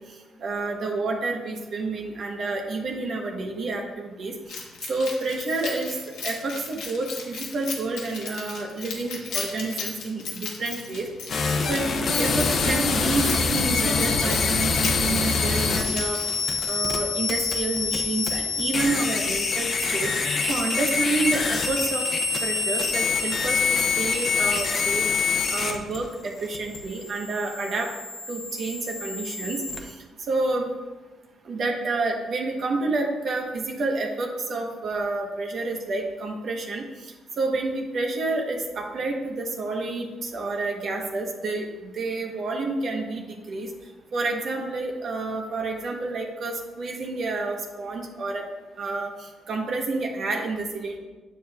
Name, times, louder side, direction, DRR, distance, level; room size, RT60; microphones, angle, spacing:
voice 1, 0.4-4.3 4.9-6.0 6.2-11.1 11.7-11.9 12.2-16.2 16.7-20.1 20.5-22.0 22.4-25.0 25.5-27.9 28.3-29.6 29.9-30.0 30.3-30.7 31.4-36.8 37.4-43.7 44.1-48.4 48.8-49.1 49.5-51.0, right 3 dB, 55° right, 1 dB, 1.0 m, -29 dB
Keys jangling, 4.5-16.6, left 4 dB, 85° left, 1.2 m, -36 dB
sound 1, 11.3-29.8, left 4 dB, 60° left, 0.8 m, -25 dB
7.5 x 7.1 x 2.4 m, 1.2 s
cardioid pair, 90°, 0 cm